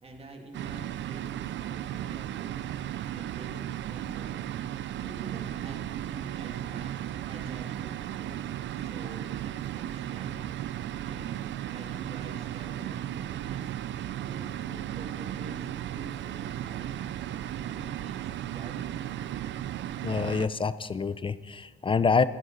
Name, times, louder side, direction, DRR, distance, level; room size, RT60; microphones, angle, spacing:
voice 1, 0.0-4.5 5.0-8.5 8.8-11.4 11.7-13.9 14.2-17.0 17.3-19.1, right 2 dB, 30° right, 2 dB, 2.1 m, -48 dB
sound 1, 0.5-20.5, right 12 dB, 65° right, 0.5 m, -35 dB
voice 2, 20.0-22.2, left 5 dB, 25° left, 15 dB, 0.5 m, -26 dB
15.0 x 11.0 x 3.9 m, 1.5 s
cardioid pair, 90°, 20 cm